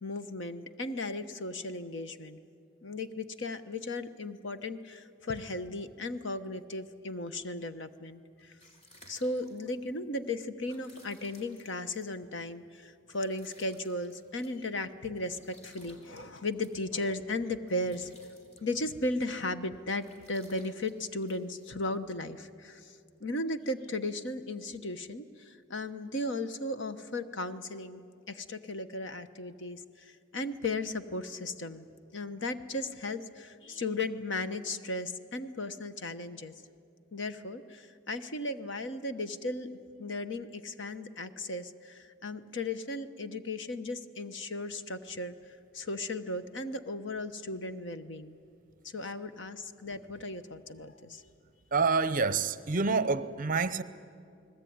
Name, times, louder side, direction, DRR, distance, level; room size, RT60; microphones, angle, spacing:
voice 1, 0.0-2.4 2.8-8.5 9.1-18.2 18.6-31.9 32.1-36.5 37.1-39.7 40.0-45.3 45.7-48.4 48.8-51.2, left 2 dB, 60° left, 1.1 m, -36 dB
sound 1, 8.3-22.1, equal, 30° left, 4.3 m, -61 dB
voice 2, 51.7-53.8, right 4 dB, 40° right, 0.8 m, -27 dB
29.5 x 20.0 x 9.6 m
head